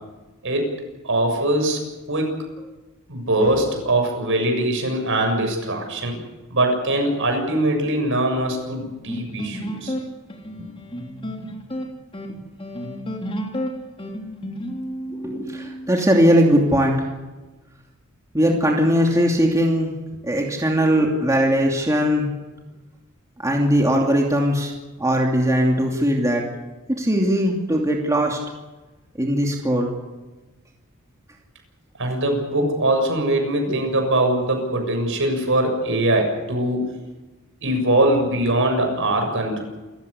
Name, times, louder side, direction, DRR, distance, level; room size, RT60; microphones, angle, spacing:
voice 1, 0.4-0.7 1.0-1.8 2.1-2.3 3.1-6.2 6.5-9.9 10.6-10.7 32.0-36.8 37.6-39.6, right 1 dB, 65° right, 3 dB, 7.1 m, -22 dB
sound 1, 9.1-16.1, equal, 25° left, 3.3 m, -31 dB
voice 2, 15.1-17.1 18.3-19.9 20.2-22.3 23.4-24.7 25.0-26.4 27.0-28.4 29.2-29.9 33.7-33.8, equal, 15° right, 0 dB, 2.8 m, -19 dB
28.0 x 15.5 x 8.4 m, 1.2 s
head